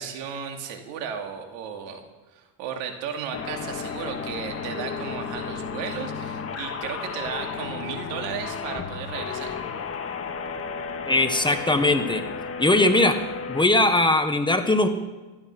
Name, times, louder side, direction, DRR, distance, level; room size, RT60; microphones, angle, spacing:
voice 1, 0.0-2.0 2.3-9.6, right 7 dB, 85° right, 4 dB, 2.6 m, -34 dB
sound 1, 3.3-13.6, left 5 dB, 30° left, 1.7 m, -33 dB
voice 2, 11.1-12.2 12.6-13.2 13.5-14.9, left 2 dB, 10° left, 7 dB, 1.3 m, -20 dB
15.0 x 12.5 x 6.0 m, 1.2 s
cardioid pair, 110°, 44 cm